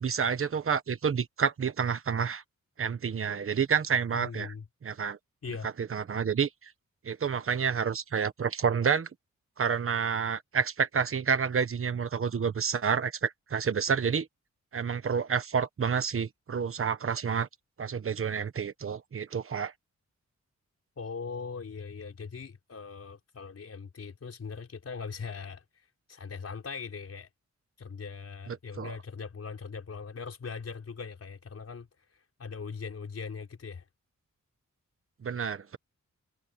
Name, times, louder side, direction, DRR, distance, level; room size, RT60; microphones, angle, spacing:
voice 1, 0.0-2.4 2.8-4.5 4.8-5.2 5.8-6.5 7.0-9.1 9.6-14.3 14.7-17.5 17.8-19.7 28.5-28.9 35.2-35.8, right 6 dB, 45° right, 1.2 m, -29 dB
voice 2, 4.1-4.6 5.4-5.7 21.0-27.3 27.8-33.8, left 5 dB, 55° left, 5.0 m, -40 dB
wide cardioid pair, 165°, 30 cm